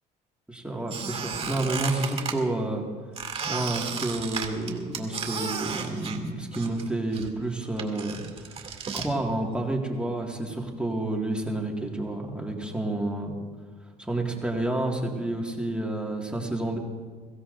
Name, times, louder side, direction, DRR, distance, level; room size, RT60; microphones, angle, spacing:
voice 1, 0.5-2.8 3.5-8.2 8.9-13.3 14.0-16.8, right 2 dB, 5° right, -1 dB, 2.0 m, -29 dB
Squeak, 0.9-2.4 3.2-6.9 7.1-9.1, right 6 dB, 35° right, 2.3 m, -34 dB
22.5 x 16.0 x 2.6 m, 1.5 s
cardioid pair, 110°, 17 cm